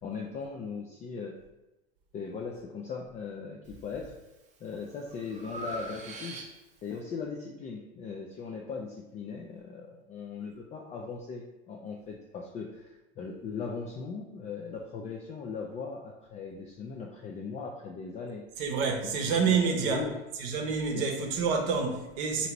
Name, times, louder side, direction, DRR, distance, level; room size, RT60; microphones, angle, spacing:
voice 1, 0.0-1.4 2.1-4.1 4.6-6.4 6.8-18.4 19.0-19.2 19.4-20.1 20.9-21.1, left 5 dB, 20° left, -1 dB, 0.3 m, -39 dB
Breathing, 3.6-4.1 4.6-6.9, right 2 dB, 20° right, 0.6 m, -42 dB
voice 2, 18.6-20.0 20.4-22.5, right 5 dB, 55° right, 2 dB, 0.8 m, -28 dB
2.8 x 2.7 x 4.4 m, 1.0 s
hypercardioid pair, 85°, 33 cm